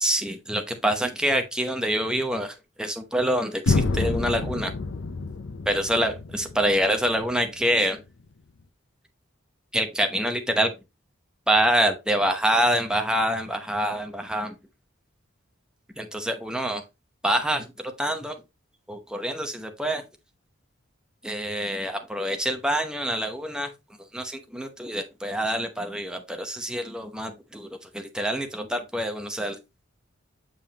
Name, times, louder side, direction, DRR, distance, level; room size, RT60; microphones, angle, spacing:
voice 1, 0.0-4.7 5.7-8.0 9.7-10.7 11.5-14.6 16.0-16.8 17.2-17.7 18.0-18.4 18.9-20.0 21.2-23.7 24.1-29.8, right 1 dB, 5° right, 0.8 m, -26 dB
sound 1, 3.7-7.6, left 3 dB, 70° left, 0.6 m, -28 dB
6.9 x 5.4 x 2.9 m
head